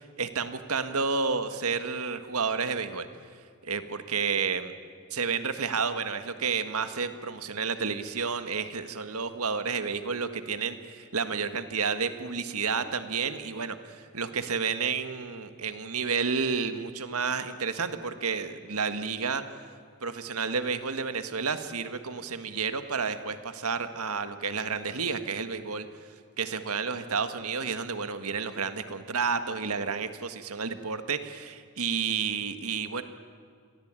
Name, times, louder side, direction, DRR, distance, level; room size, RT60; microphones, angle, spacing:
voice 1, 0.2-3.1 3.7-4.7 5.1-19.4 20.0-25.9 26.4-33.0, right 5 dB, 75° right, 9 dB, 1.8 m, -31 dB
29.0 x 22.5 x 9.1 m, 2.1 s
head